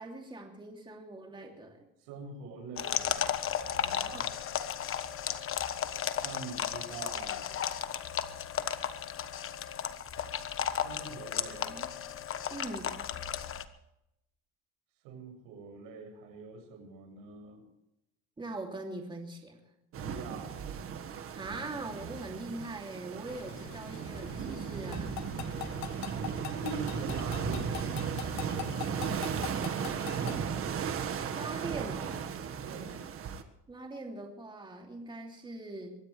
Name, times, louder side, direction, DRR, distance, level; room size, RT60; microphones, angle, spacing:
voice 1, 0.0-1.9 4.1-4.3 11.6-11.9 12.5-13.0 18.4-19.6 21.3-25.2 31.3-32.2 33.7-36.0, right 2 dB, 15° right, 2 dB, 2.8 m, -42 dB
voice 2, 2.0-4.3 6.2-7.5 10.8-11.8 15.0-17.6 19.9-20.6 26.5-29.6 32.6-33.0, right 4 dB, 85° right, 3 dB, 6.6 m, -44 dB
sound 1, 2.8-13.6, left 9 dB, 40° left, 1.2 m, -34 dB
sound 2, 19.9-33.4, right 7 dB, 40° right, 1.6 m, -36 dB
sound 3, 23.3-30.4, left 18 dB, 55° left, 0.6 m, -44 dB
23.5 x 16.5 x 3.3 m, 0.85 s
cardioid pair, 135°, 33 cm